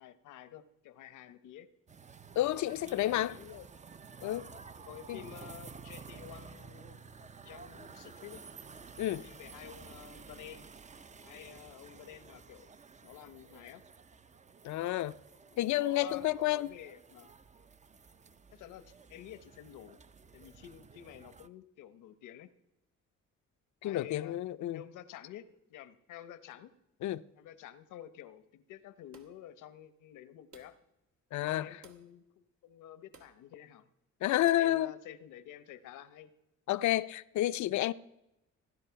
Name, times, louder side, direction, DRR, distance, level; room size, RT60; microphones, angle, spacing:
voice 1, 0.0-1.7 2.5-3.7 4.2-4.4 4.8-7.0 7.4-8.4 9.2-10.7 11.2-12.7 13.0-13.8 15.5-17.3 18.5-20.0 20.3-22.5 23.8-24.4 24.7-26.7 27.4-30.8 31.5-33.9 34.3-36.3, left 11 dB, 85° left, 0.9 m, -50 dB
sound 1, 1.9-21.5, right 5 dB, 25° right, 0.5 m, -52 dB
voice 2, 2.4-3.3 4.2-4.4 5.1-5.2 9.0-9.2 14.6-15.2 15.6-16.7 23.8-24.8 27.0-27.2 31.3-31.8 34.2-34.9 36.7-37.9, left 14 dB, 70° left, 0.6 m, -30 dB
sound 2, 29.1-29.5 30.5-30.9 31.8-32.1 33.1-33.4 34.5-34.8, right 4 dB, 70° right, 1.5 m, -57 dB
16.0 x 10.5 x 5.8 m
cardioid pair, 90°, 30 cm